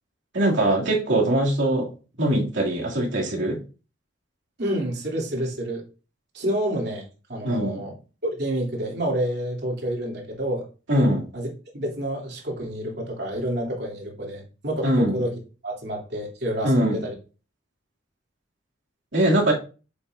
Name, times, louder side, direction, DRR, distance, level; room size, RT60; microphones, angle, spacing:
voice 1, 0.3-1.9 2.2-3.6 7.4-7.8 10.9-11.3 14.8-15.2 16.6-17.0 19.1-19.5, right 1 dB, 80° right, -2 dB, 2.5 m, -22 dB
voice 2, 4.6-5.8 6.3-7.9 8.2-10.7 11.3-11.5 11.7-15.3 15.6-17.1, right 1 dB, 60° right, -1 dB, 2.8 m, -28 dB
8.5 x 7.2 x 2.6 m, 0.35 s
head